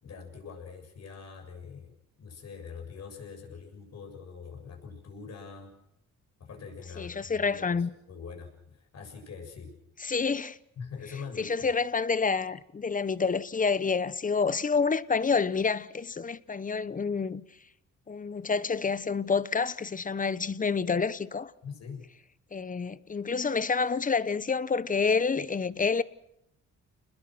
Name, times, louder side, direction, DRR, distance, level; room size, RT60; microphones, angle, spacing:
voice 1, 0.0-5.8 6.4-9.7 10.8-11.7 21.6-22.0, left 5 dB, 60° left, 7.2 m, -44 dB
voice 2, 7.0-7.9 10.0-10.6 11.4-17.4 18.1-21.5 22.5-26.0, left 5 dB, 25° left, 1.0 m, -28 dB
29.0 x 20.5 x 6.2 m
cardioid pair, 90°, 30 cm